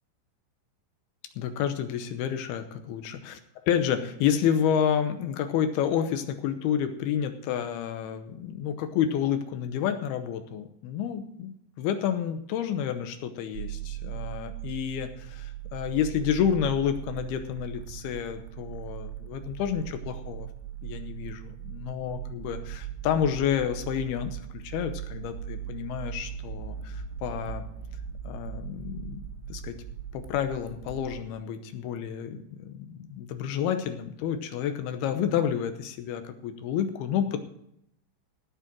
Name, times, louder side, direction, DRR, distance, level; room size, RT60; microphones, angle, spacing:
voice 1, 1.4-3.4 3.7-11.5 11.8-20.5 20.8-27.6 28.2-29.2 29.5-29.8 30.1-37.4, left 9 dB, 80° left, 8 dB, 2.3 m, -29 dB
sound 1, 13.5-31.2, right 10 dB, 90° right, 3.9 m, -39 dB
16.5 x 5.6 x 7.4 m, 0.74 s
omnidirectional pair, 5.6 m